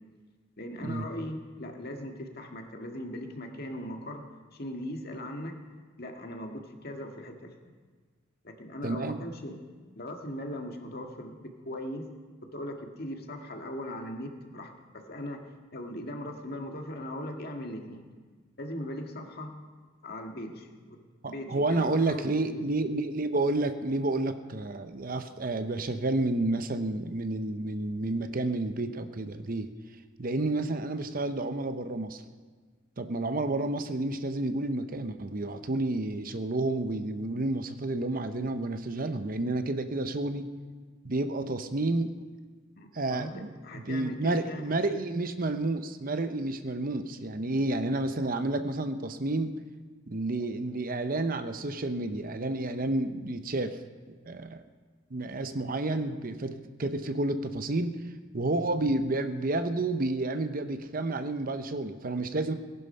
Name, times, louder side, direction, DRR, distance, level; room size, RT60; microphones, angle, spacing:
voice 1, 0.6-4.2 4.5-5.6 6.0-7.7 8.4-9.6 10.0-12.1 12.4-15.5 15.7-18.0 18.6-19.5 20.0-22.6 42.8-43.3 43.6-44.7, left 1 dB, 50° left, 3 dB, 1.8 m, -39 dB
voice 2, 8.8-9.2 21.2-29.7 30.2-32.2 33.0-40.5 41.0-42.1 42.9-49.5 50.1-53.8 54.3-54.6 55.1-57.9 58.3-62.5, right 2 dB, 45° right, 9 dB, 0.8 m, -30 dB
18.5 x 11.0 x 5.6 m, 1.5 s
head